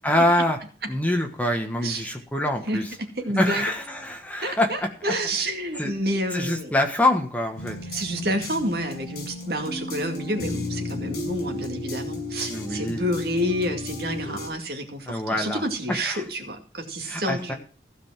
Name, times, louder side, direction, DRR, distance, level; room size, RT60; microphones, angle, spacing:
voice 1, 0.0-0.6 0.9-2.9 3.4-4.9 5.8-5.9 6.3-7.8 12.5-13.0 15.1-15.6 16.0-16.2 17.0-17.5, left 1 dB, 10° left, 3 dB, 1.6 m, -25 dB
voice 2, 2.7-3.7 4.4-6.7 7.9-17.5, equal, 60° right, 5 dB, 2.2 m, -29 dB
sound 1, 7.6-14.5, left 2 dB, 60° left, 6.0 m, -34 dB
15.5 x 5.3 x 7.4 m, 0.38 s
head